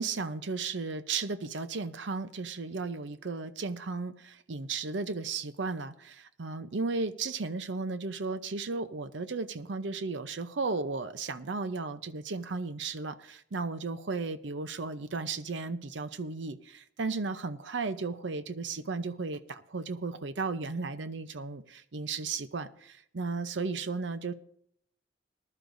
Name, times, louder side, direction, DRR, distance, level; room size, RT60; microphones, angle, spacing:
voice 1, 0.0-24.3, right 4 dB, 75° right, 11 dB, 0.7 m, -35 dB
19.5 x 12.0 x 2.6 m, 0.67 s
head